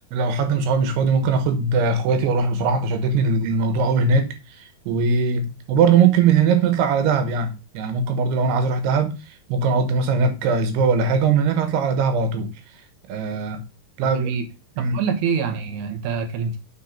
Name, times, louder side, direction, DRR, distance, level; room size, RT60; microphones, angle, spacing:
voice 1, 0.1-12.5 13.1-13.7 14.0-14.3 14.8-15.0, right 5 dB, 90° right, 3.3 m, -20 dB
voice 2, 14.0-14.5 14.8-16.6, right 6 dB, 60° right, 2.3 m, -25 dB
9.1 x 4.2 x 4.3 m
omnidirectional pair, 4.5 m